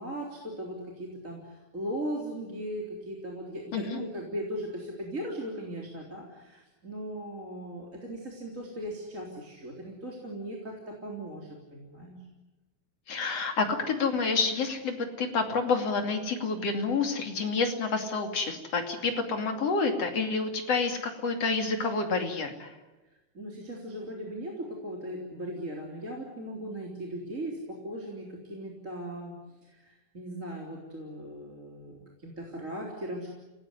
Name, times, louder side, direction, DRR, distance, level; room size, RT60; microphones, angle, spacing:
voice 1, 0.0-12.3 23.3-29.4 29.6-33.3, right 1 dB, 25° right, -2 dB, 4.0 m, -38 dB
voice 2, 3.7-4.0 13.1-22.7, left 4 dB, 50° left, 5 dB, 3.6 m, -28 dB
29.0 x 19.0 x 9.7 m, 1.1 s
omnidirectional pair, 3.6 m